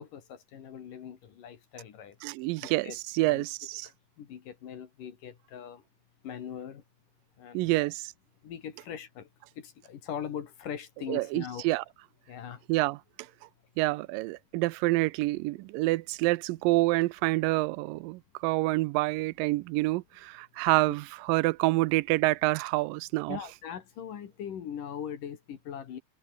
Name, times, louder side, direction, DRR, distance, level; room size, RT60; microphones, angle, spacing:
voice 1, 0.0-2.2 2.6-3.5 4.2-5.8 6.2-6.8 7.4-7.9 8.4-9.3 9.6-11.7 12.3-12.6 23.3-26.0, left 8 dB, 70° left, 3.7 m, -41 dB
voice 2, 2.2-3.9 7.5-8.1 11.1-11.8 12.7-13.0 13.8-23.4, right 20 dB, 85° right, 2.3 m, -27 dB
open air
omnidirectional pair, 4.0 m